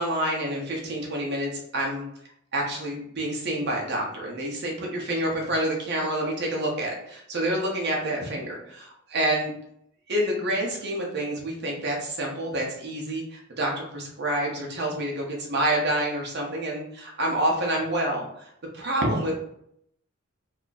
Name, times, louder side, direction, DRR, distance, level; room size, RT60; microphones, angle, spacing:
voice 1, 0.0-2.0 2.5-9.5 10.1-19.3, right 1 dB, 55° right, -2 dB, 0.9 m, -28 dB
3.0 x 2.4 x 3.9 m, 0.73 s
head